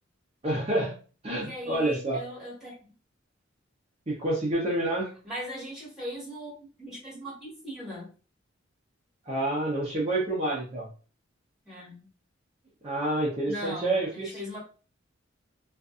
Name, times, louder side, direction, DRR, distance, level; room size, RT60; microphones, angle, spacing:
voice 1, 0.4-0.9 1.2-2.2 4.1-5.1 9.3-10.9 12.8-14.3, right 1 dB, 30° right, -5 dB, 0.7 m, -28 dB
voice 2, 1.3-2.8 5.2-8.1 11.6-12.1 13.5-14.6, equal, ahead, -7 dB, 1.4 m, -39 dB
2.5 x 2.5 x 2.4 m, 0.37 s
head